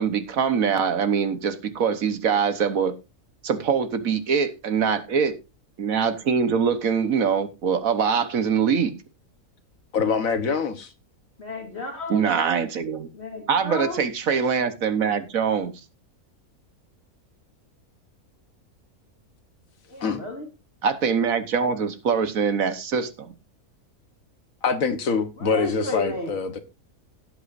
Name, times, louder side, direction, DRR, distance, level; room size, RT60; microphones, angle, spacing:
voice 1, 0.0-2.9 3.4-5.4 5.8-8.9 12.1-13.1 13.5-15.7 20.8-23.3, right 6 dB, 65° right, 1.5 m, -23 dB
voice 2, 9.9-10.9 20.0-20.2 24.6-26.6, left 5 dB, 65° left, 1.6 m, -24 dB
voice 3, 11.4-12.3 13.1-14.0 19.9-20.5 25.4-26.3, left 2 dB, 45° left, 2.5 m, -32 dB
17.0 x 8.1 x 2.6 m
omnidirectional pair, 1.6 m